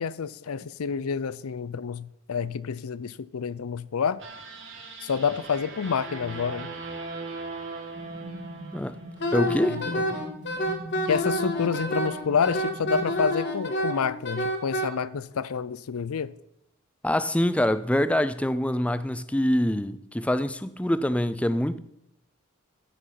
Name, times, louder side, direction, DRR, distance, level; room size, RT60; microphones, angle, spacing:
voice 1, 0.0-4.2 5.0-6.7 9.7-10.0 11.1-16.3, left 6 dB, 80° left, 0.5 m, -28 dB
sound 1, 4.2-9.5, right 3 dB, 55° right, 2.1 m, -39 dB
sound 2, 7.9-13.2, right 1 dB, 30° right, 2.7 m, -41 dB
Wind instrument woodwind instrument, 9.2-14.9, equal, 50° left, 1.7 m, -28 dB
voice 2, 9.3-9.8 10.1-10.2 17.0-21.8, left 1 dB, 5° left, 0.4 m, -25 dB
14.0 x 6.2 x 5.8 m
head